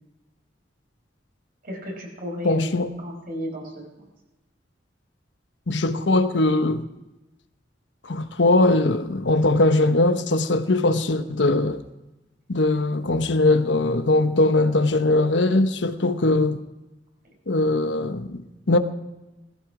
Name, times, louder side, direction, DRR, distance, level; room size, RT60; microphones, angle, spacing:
voice 1, 1.6-4.1, equal, 55° right, 5.0 m, -34 dB
voice 2, 2.4-2.9 5.7-6.8 8.0-11.8 12.5-16.6 17.5-18.8, left 2 dB, 80° left, 1.0 m, -21 dB
18.0 x 15.0 x 4.9 m
head